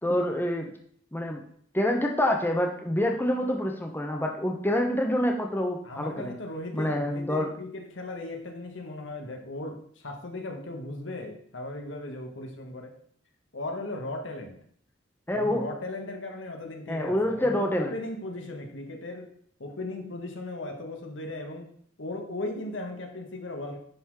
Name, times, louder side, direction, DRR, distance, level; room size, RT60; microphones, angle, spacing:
voice 1, 0.0-0.7 1.1-1.4 1.7-6.3 6.7-7.5 15.3-15.6 16.9-17.9, left 1 dB, 10° left, 2 dB, 1.0 m, -27 dB
voice 2, 5.8-13.0 13.5-14.6 15.3-19.3 19.6-21.7 22.0-23.8, left 2 dB, 75° left, 3 dB, 1.5 m, -37 dB
10.5 x 4.2 x 4.8 m, 0.62 s
head